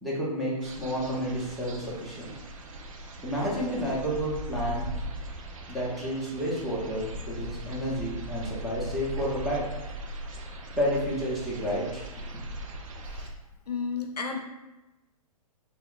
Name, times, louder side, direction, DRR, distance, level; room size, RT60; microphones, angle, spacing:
voice 1, 0.0-2.3 3.2-4.9 5.7-9.7 10.8-12.3, equal, ahead, -7 dB, 0.6 m, -30 dB
sound 1, 0.6-13.3, right 1 dB, 55° right, 0.5 m, -39 dB
voice 2, 13.7-14.4, left 5 dB, 85° left, 4 dB, 0.5 m, -32 dB
2.3 x 2.0 x 3.6 m, 1.1 s
figure-of-eight pair, 120°, 20 cm